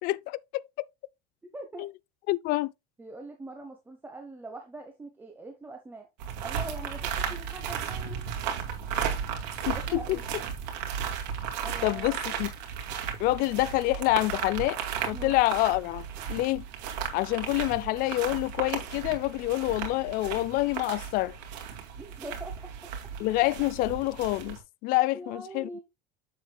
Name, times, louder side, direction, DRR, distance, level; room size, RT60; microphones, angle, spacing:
voice 1, 0.0-0.6 1.8-1.9 2.3-2.7 9.7-10.0 11.8-12.5 13.2-14.8 15.1-16.6 17.1-21.3 23.2-25.7, left 18 dB, 45° left, 0.4 m, -27 dB
voice 2, 1.4-1.9 3.0-6.1 6.4-8.2 9.7-10.3 11.6-12.2 15.1-15.4 22.0-22.7 25.1-25.8, right 2 dB, 10° right, 1.0 m, -42 dB
sound 1, 6.2-24.6, right 8 dB, 85° right, 2.5 m, -35 dB
7.5 x 7.4 x 2.3 m
cardioid pair, 150°, 21 cm